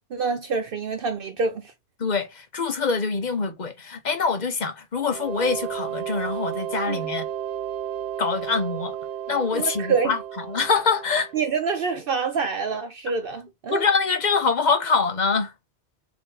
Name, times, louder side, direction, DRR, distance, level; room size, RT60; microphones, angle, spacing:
voice 1, 0.0-1.7 6.9-7.0 9.5-10.1 11.3-13.8, right 5 dB, 60° right, 0.7 m, -26 dB
voice 2, 2.0-7.2 8.2-9.0 9.3-11.3 13.7-15.5, left 5 dB, 45° left, 0.8 m, -24 dB
sound 1, 5.0-11.6, right 10 dB, 80° right, 1.0 m, -33 dB
4.9 x 2.7 x 3.8 m
omnidirectional pair, 1.2 m